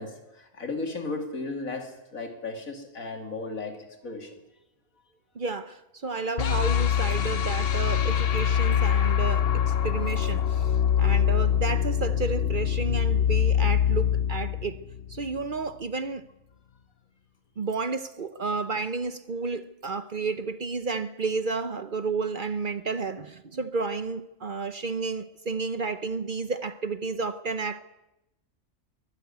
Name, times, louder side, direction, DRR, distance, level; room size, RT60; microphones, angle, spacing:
voice 1, 0.0-4.4, left 3 dB, 90° left, 3.1 m, -35 dB
voice 2, 5.3-10.7 11.0-14.8 15.1-16.3 17.6-27.8, right 4 dB, 45° right, 0.8 m, -31 dB
sound 1, 6.4-15.5, left 9 dB, 50° left, 1.0 m, -24 dB
22.5 x 13.0 x 9.3 m
omnidirectional pair, 1.4 m